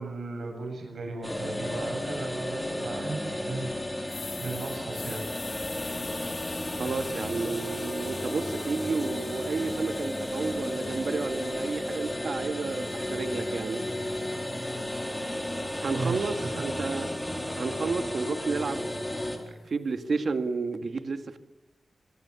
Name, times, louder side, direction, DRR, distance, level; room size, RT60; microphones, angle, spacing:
voice 1, 0.0-5.3 15.9-16.7 19.4-19.5, right 3 dB, 85° right, 2 dB, 7.7 m, -36 dB
sound 1, 1.2-19.4, left 1 dB, 10° left, 4.1 m, -33 dB
sound 2, 4.1-12.1 12.6-16.8, left 6 dB, 80° left, 1.9 m, -46 dB
voice 2, 6.7-13.8 15.8-17.1 17.6-19.0 19.7-21.4, right 4 dB, 60° right, 9 dB, 1.9 m, -31 dB
26.0 x 22.5 x 7.2 m, 0.97 s
wide cardioid pair, 155°, 0 cm